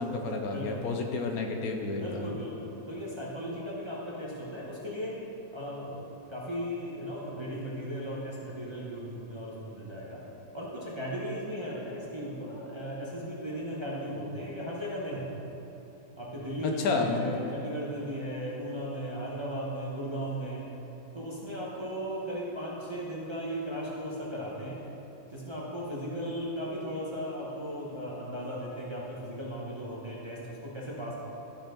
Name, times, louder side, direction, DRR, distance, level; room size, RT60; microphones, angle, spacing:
voice 1, 0.0-2.3 16.6-17.4, left 3 dB, 75° left, 3 dB, 1.1 m, -31 dB
voice 2, 0.5-0.8 2.0-5.1 5.5-6.0 6.3-10.2 10.5-15.3 16.2-20.6 21.1-24.8 25.3-31.2, equal, 20° right, -6 dB, 1.0 m, -36 dB
13.0 x 4.5 x 3.9 m, 2.9 s
omnidirectional pair, 1.6 m